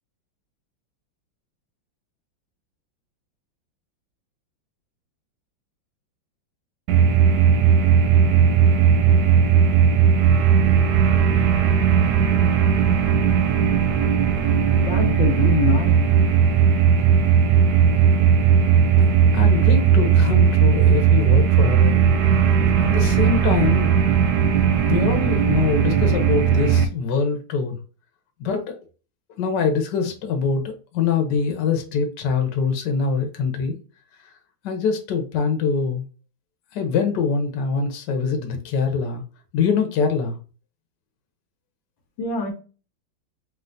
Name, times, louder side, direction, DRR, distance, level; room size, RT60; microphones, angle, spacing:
sound 1, 6.9-26.8, right 7 dB, 70° right, 1.1 m, -17 dB
voice 1, 14.8-16.1 42.2-42.5, left 4 dB, 90° left, 3 dB, 1.7 m, -24 dB
voice 2, 19.0-22.0 22.8-23.9 24.9-27.8 28.4-28.8 29.4-33.8 34.6-36.0 36.7-39.2 39.5-40.4, left 5 dB, 70° left, 5 dB, 1.4 m, -24 dB
4.2 x 3.4 x 2.6 m, 0.34 s
omnidirectional pair, 2.0 m